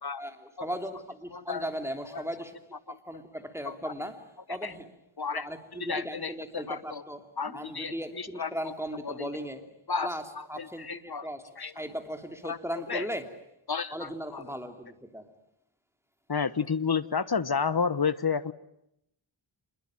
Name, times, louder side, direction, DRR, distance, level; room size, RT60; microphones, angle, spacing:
voice 1, 0.2-2.6 2.9-4.9 5.3-9.6 10.0-10.2 10.5-13.3 13.9-15.3, equal, 5° right, 5 dB, 3.0 m, -37 dB
voice 2, 1.3-1.7 2.1-2.2 2.9-3.2 3.6-3.9 4.6-4.7 5.2-5.5 5.8-7.0 7.4-8.7 9.0-9.3 9.9-10.1 10.4-11.3 11.6-11.7 12.4-12.6 12.9-13.1 13.7-14.4 16.3-18.5, left 5 dB, 50° left, 15 dB, 1.2 m, -31 dB
27.5 x 21.5 x 8.9 m, 0.80 s
wide cardioid pair, 70°, 49 cm